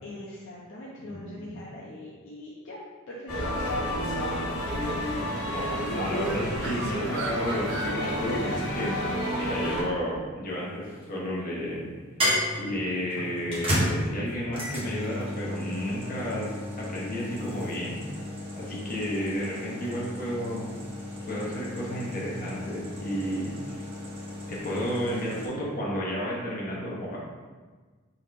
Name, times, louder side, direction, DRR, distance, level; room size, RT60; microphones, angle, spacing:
voice 1, 0.0-2.8 3.1-3.9 4.2-5.0 18.7-18.9, left 1 dB, 65° left, -6 dB, 0.6 m, -41 dB
voice 2, 1.0-1.6 5.5-11.9 12.6-16.5 16.8-18.3 18.5-20.7 21.3-23.8 24.5-27.2, equal, 40° left, -5 dB, 1.2 m, -32 dB
sound 1, 3.3-9.8, equal, 85° left, 1.2 m, -30 dB
Bird, 4.7-9.9, right 6 dB, 60° right, 0.3 m, -42 dB
sound 2, 10.5-11.1 12.2-25.5, equal, 25° right, 1.1 m, -33 dB
3.8 x 2.9 x 4.6 m, 1.4 s
head